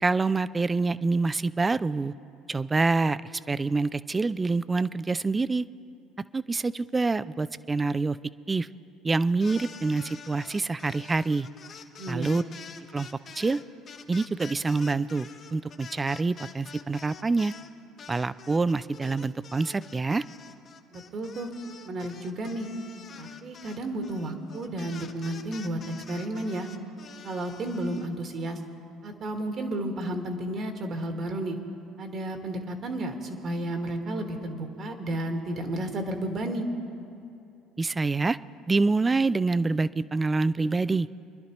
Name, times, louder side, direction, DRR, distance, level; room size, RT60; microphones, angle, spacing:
voice 1, 0.0-2.1 2.5-3.2 3.5-5.7 6.3-8.2 8.5-8.7 9.0-11.5 12.1-12.4 12.9-13.1 13.4-13.6 14.1-17.5 18.1-20.2 37.8-38.4 38.7-41.1, right 3 dB, 20° right, 17 dB, 0.4 m, -26 dB
sound 1, 9.3-17.7 18.0-28.1, left 6 dB, 45° left, 1.1 m, -47 dB
voice 2, 12.0-12.4 20.9-21.5 21.8-22.7 23.2-25.8 26.1-26.7 27.2-28.6 29.0-31.6 32.0-36.7, right 1 dB, 50° right, 5 dB, 1.6 m, -32 dB
26.0 x 11.5 x 3.0 m, 2.7 s
hypercardioid pair, 70°, 0 cm